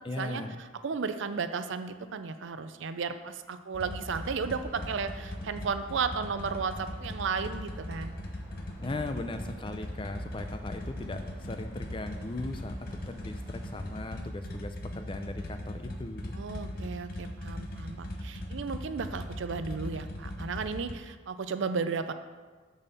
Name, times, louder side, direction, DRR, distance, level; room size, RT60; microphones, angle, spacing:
voice 1, 0.0-0.6 8.8-16.3, left 2 dB, 25° left, 7 dB, 0.5 m, -38 dB
voice 2, 0.8-8.2 16.4-22.1, right 5 dB, 70° right, 10 dB, 0.5 m, -34 dB
sound 1, 3.7-20.9, left 1 dB, 45° left, 0.8 m, -39 dB
sound 2, 3.9-14.0, equal, 20° right, 1.6 m, -52 dB
7.1 x 4.2 x 6.7 m, 1.4 s
head